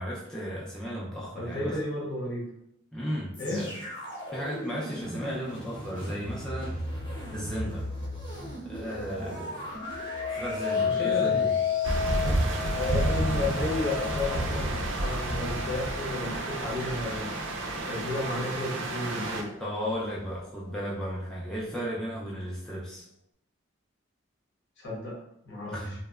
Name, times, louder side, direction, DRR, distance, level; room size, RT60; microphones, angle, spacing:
voice 1, 0.0-1.8 2.9-3.7 4.3-7.0 7.3-7.8 8.7-9.7 10.3-11.5 19.6-23.0 25.7-25.9, equal, 5° left, -7 dB, 0.4 m, -35 dB
voice 2, 1.4-2.5 3.4-3.6 10.8-11.5 11.9-12.4 12.7-17.3 17.9-19.5 24.8-25.1 25.4-25.8, left 1 dB, 65° left, -4 dB, 0.9 m, -33 dB
sound 1, 3.3-13.4 14.0-14.1, equal, 25° left, 0.8 m, -39 dB
sound 2, 9.8-19.0 19.5-20.0, left 7 dB, 80° left, 0.4 m, -32 dB
sound 3, 11.8-19.4, right 1 dB, 70° right, 0.4 m, -30 dB
2.8 x 2.1 x 2.3 m, 0.75 s
head